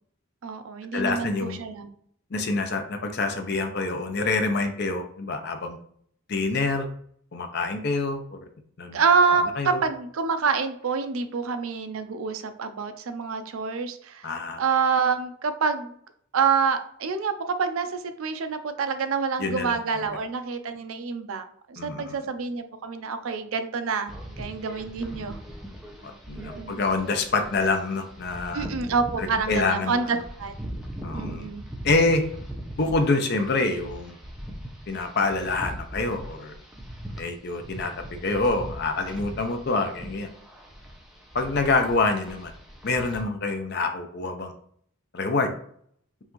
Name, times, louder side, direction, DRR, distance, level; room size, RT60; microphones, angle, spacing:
voice 1, 0.4-1.9 8.9-14.3 14.6-15.9 16.3-25.4 26.4-26.8 28.5-30.5 31.1-31.6, right 5 dB, 75° right, 9 dB, 0.5 m, -27 dB
voice 2, 0.9-1.6 2.3-5.8 6.3-6.9 7.3-8.4 8.8-9.0 9.3-9.8 14.2-14.6 19.4-20.2 21.8-22.1 26.0-28.7 29.2-29.9 31.0-31.5 31.8-32.2 32.8-34.2 34.9-36.5 37.2-37.9 38.2-40.3 41.3-42.5 42.8-44.5 45.1-45.5, left 3 dB, 50° left, 6 dB, 0.6 m, -26 dB
sound 1, 24.1-43.2, equal, ahead, 0.6 m, -40 dB
5.5 x 2.5 x 3.0 m, 0.62 s
head